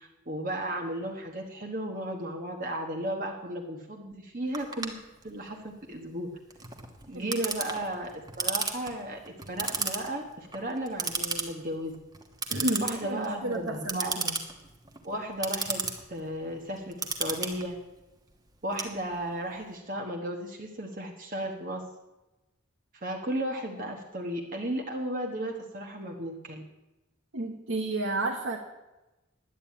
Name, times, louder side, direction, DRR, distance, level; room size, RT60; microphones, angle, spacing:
voice 1, 0.0-4.9 5.2-6.3 7.0-12.0 12.8-14.2 15.0-17.7 18.6-21.9 22.9-26.6, right 1 dB, 40° right, 1 dB, 1.3 m, -35 dB
Clock, 4.5-19.5, right 4 dB, 20° right, 1.2 m, -35 dB
voice 2, 12.5-14.4 27.3-28.6, right 2 dB, 75° right, 0 dB, 1.4 m, -31 dB
11.0 x 9.1 x 8.6 m, 1.0 s
head